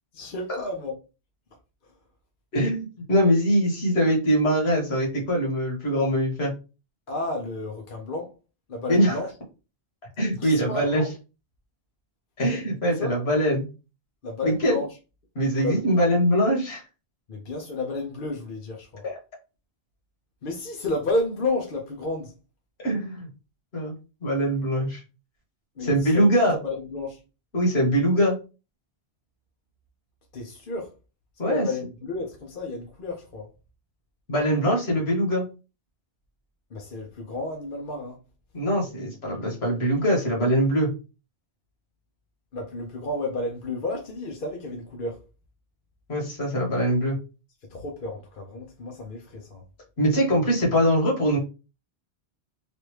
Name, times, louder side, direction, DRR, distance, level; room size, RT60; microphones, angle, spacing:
voice 1, 0.1-1.0 1.8-1.9 7.1-8.3 8.7-9.3 10.4-11.1 13.0-13.2 14.2-14.9 15.5-16.2 17.3-19.1 20.4-22.3 25.8-27.2 30.3-30.9 31.5-33.5 36.7-38.2 42.5-45.2 47.7-49.6, left 2 dB, 55° left, 0.8 m, -32 dB
voice 2, 2.5-6.5 8.9-9.2 10.2-11.0 12.4-13.7 14.4-14.7 15.3-16.8 19.0-19.1 22.8-23.3 23.7-23.9 24.2-25.0 25.9-26.5 27.5-28.4 31.4-31.6 34.3-35.5 38.5-40.9 46.1-47.2 50.0-51.4, equal, 70° left, 1.6 m, -22 dB
3.3 x 2.6 x 3.0 m
omnidirectional pair, 1.1 m